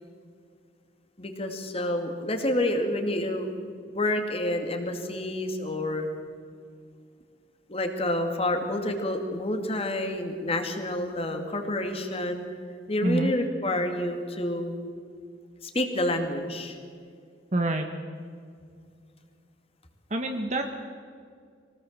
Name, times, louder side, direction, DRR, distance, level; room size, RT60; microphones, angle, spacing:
voice 1, 1.2-3.5 3.9-6.1 7.7-12.4 12.9-14.7 15.6-16.8, left 1 dB, 35° left, 5 dB, 2.4 m, -28 dB
voice 2, 17.5-17.9 20.1-20.7, right 2 dB, 40° right, 4 dB, 1.3 m, -26 dB
24.0 x 18.5 x 7.4 m, 2.2 s
head